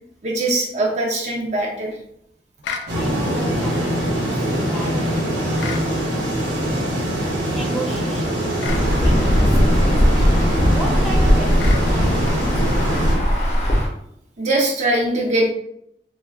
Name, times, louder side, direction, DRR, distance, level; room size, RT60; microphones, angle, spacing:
voice 1, 0.2-2.0 14.4-15.5, right 1 dB, 40° right, -1 dB, 0.5 m, -21 dB
sound 1, 2.6-2.9 5.6-5.9 8.6-8.9 11.6-11.9, left 5 dB, 85° left, 0.3 m, -30 dB
voice 2, 2.9-5.7 7.5-8.5 8.9-10.4 10.7-13.2, right 1 dB, ahead, -4 dB, 0.6 m, -35 dB
sound 2, 2.9-13.2, equal, 90° right, 0.9 m, -23 dB
Insect / Thunder / Rain, 8.7-13.9, equal, 40° left, 0.7 m, -18 dB
2.3 x 2.2 x 3.3 m, 0.73 s
head